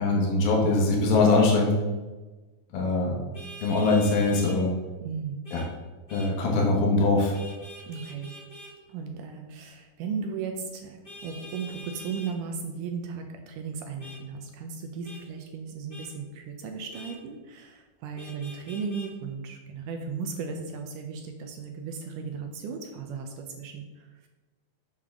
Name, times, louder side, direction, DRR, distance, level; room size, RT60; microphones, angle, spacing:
voice 1, 0.0-1.7 2.7-3.2 3.6-4.7 5.5-5.6 6.1-7.3, left 3 dB, 85° left, -2 dB, 3.1 m, -22 dB
Vehicle horn car horn honking, 3.3-4.6 5.4-5.7 6.1-6.3 7.3-8.7 11.0-12.3 14.0-14.2 15.0-15.2 15.9-16.1 16.9-17.2 18.2-19.1, equal, 35° left, 0.5 m, -44 dB
voice 2, 5.0-5.4 7.9-8.4 8.9-24.3, right 5 dB, 80° right, 4 dB, 2.1 m, -36 dB
7.4 x 6.5 x 3.7 m, 1.2 s
omnidirectional pair, 4.1 m